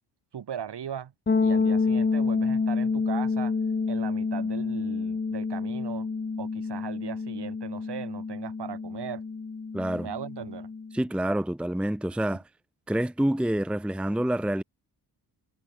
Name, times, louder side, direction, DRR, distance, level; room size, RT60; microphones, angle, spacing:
voice 1, 0.3-1.1 1.4-3.6 3.9-6.1 6.4-9.2 10.0-10.7, right 8 dB, 60° right, 5.4 m, -38 dB
sound 1, 1.3-11.0, left 4 dB, 20° left, 1.3 m, -28 dB
voice 2, 9.7-10.1 10.9-12.4 12.9-14.6, right 1 dB, ahead, 0.8 m, -27 dB
cardioid pair, 70°, 45 cm